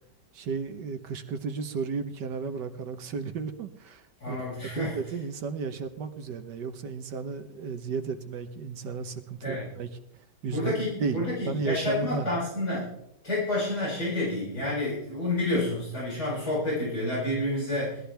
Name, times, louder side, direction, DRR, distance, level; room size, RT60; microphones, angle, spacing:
voice 1, 0.3-4.4 4.8-9.9 10.4-10.7 11.0-12.3, right 5 dB, 80° right, 8 dB, 1.7 m, -33 dB
voice 2, 4.2-4.9 9.4-9.7 10.5-12.8 13.2-18.0, left 2 dB, 70° left, -9 dB, 7.9 m, -29 dB
20.0 x 13.0 x 3.4 m, 0.78 s
omnidirectional pair, 1.8 m